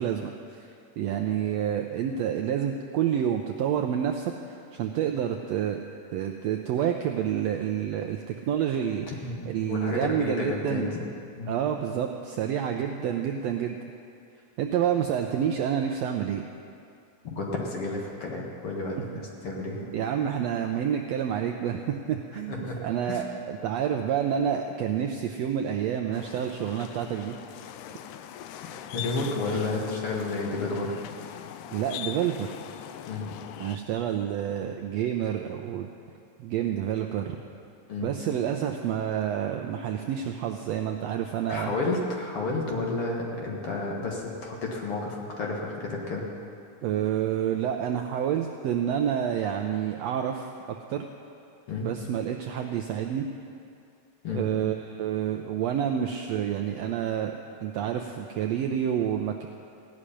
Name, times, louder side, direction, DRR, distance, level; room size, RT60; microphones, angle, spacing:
voice 1, 0.0-5.8 6.1-9.1 9.5-10.9 11.5-13.8 14.6-16.4 19.9-27.4 29.5-29.6 31.7-32.5 33.6-35.9 36.4-37.4 38.0-41.7 46.8-51.0 51.8-53.3 54.3-59.5, right 9 dB, 80° right, 4 dB, 1.5 m, -28 dB
voice 2, 9.1-11.0 11.4-11.5 17.2-19.9 22.5-23.2 28.9-30.9 33.1-33.3 37.9-38.1 41.5-46.2 51.7-51.9 54.2-54.5, left 3 dB, 50° left, -2 dB, 2.3 m, -31 dB
sound 1, 26.1-33.8, left 10 dB, 85° left, 2.1 m, -41 dB
16.0 x 6.4 x 9.9 m, 2.5 s
omnidirectional pair, 3.6 m